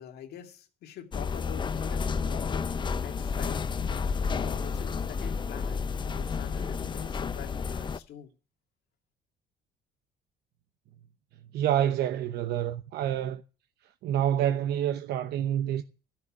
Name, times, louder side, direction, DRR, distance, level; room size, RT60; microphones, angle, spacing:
voice 1, 0.0-3.7 4.3-8.3, left 10 dB, 70° left, 2.2 m, -45 dB
sound 1, 1.1-8.0, left 5 dB, 30° left, 0.6 m, -31 dB
voice 2, 11.5-13.4 14.0-15.8, right 11 dB, 75° right, 0.9 m, -27 dB
13.5 x 6.8 x 8.5 m
cardioid pair, 110°, 17 cm